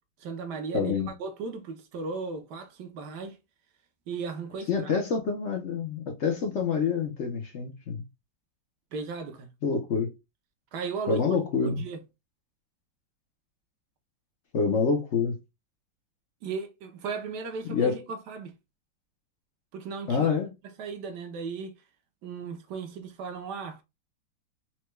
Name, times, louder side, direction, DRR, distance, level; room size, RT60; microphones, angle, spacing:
voice 1, 0.2-3.4 4.1-4.9 8.9-9.5 10.7-11.2 11.6-12.0 16.4-18.5 19.7-20.3 20.6-21.8 22.2-23.8, right 4 dB, 65° right, 1.3 m, -36 dB
voice 2, 0.7-1.1 4.7-8.0 9.6-10.1 11.1-11.8 14.5-15.4 17.7-18.0 20.1-20.5, left 5 dB, 65° left, 0.7 m, -27 dB
4.4 x 2.2 x 3.0 m
omnidirectional pair, 2.1 m